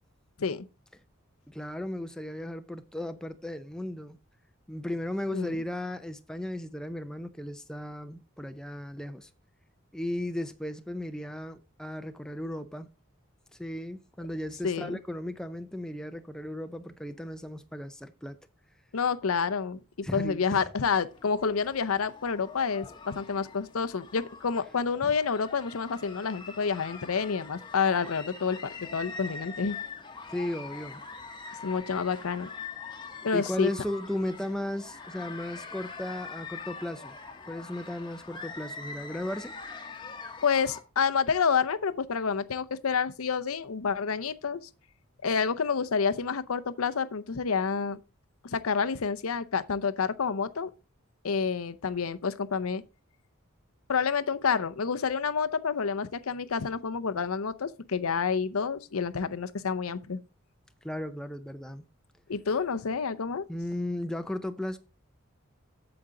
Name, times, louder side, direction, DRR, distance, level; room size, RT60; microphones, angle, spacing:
voice 1, 1.5-4.2 4.7-9.3 9.9-12.9 13.5-18.4 20.0-20.7 22.9-23.0 25.0-25.1 30.3-31.0 33.3-37.2 37.5-39.5 60.8-61.8 63.5-64.8, left 1 dB, 5° left, 0.5 m, -35 dB
voice 2, 14.6-15.0 18.9-19.8 20.1-29.8 31.6-32.5 33.2-33.7 40.4-44.7 45.2-48.0 48.4-50.7 51.2-52.8 53.9-60.2 62.3-63.5, left 5 dB, 85° left, 0.7 m, -29 dB
sound 1, 20.9-40.8, left 4 dB, 20° left, 1.0 m, -44 dB
8.7 x 7.0 x 3.8 m
head